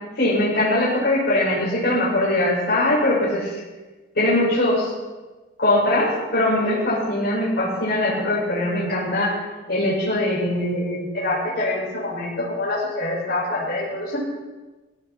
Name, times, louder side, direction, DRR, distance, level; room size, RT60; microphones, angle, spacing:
voice 1, 0.2-3.6 4.1-4.9 5.6-9.4 9.7-14.2, left 1 dB, 55° left, -7 dB, 6.0 m, -22 dB
19.5 x 16.5 x 4.3 m, 1.2 s
head